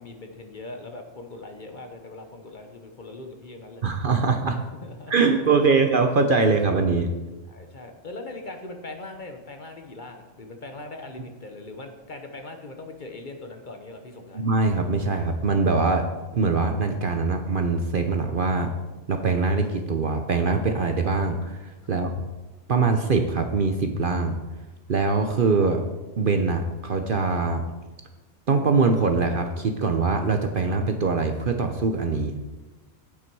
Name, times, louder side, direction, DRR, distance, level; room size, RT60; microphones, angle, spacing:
voice 1, 0.0-3.8 4.8-5.5 7.5-14.4 18.5-18.7 21.9-22.1, left 2 dB, 45° left, 5 dB, 0.9 m, -40 dB
voice 2, 3.8-4.6 5.1-7.1 14.3-16.0 16.3-18.7 19.1-22.1 22.7-24.4 24.9-25.8 26.2-27.6 28.5-32.5, right 4 dB, 50° right, 6 dB, 0.8 m, -23 dB
8.8 x 8.4 x 4.6 m, 1.1 s
omnidirectional pair, 1.3 m